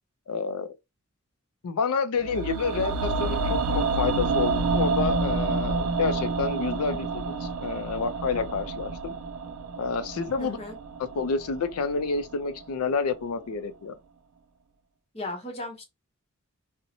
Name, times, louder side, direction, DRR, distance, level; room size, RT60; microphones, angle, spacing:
voice 1, 0.3-0.7 1.6-9.2 9.8-10.6 11.1-13.9, left 5 dB, 85° left, 0.4 m, -29 dB
sound 1, 2.2-12.3 12.6-12.7, right 4 dB, 80° right, 0.4 m, -29 dB
voice 2, 10.4-10.8 15.1-15.8, left 2 dB, 25° left, 0.8 m, -36 dB
2.6 x 2.1 x 2.7 m
head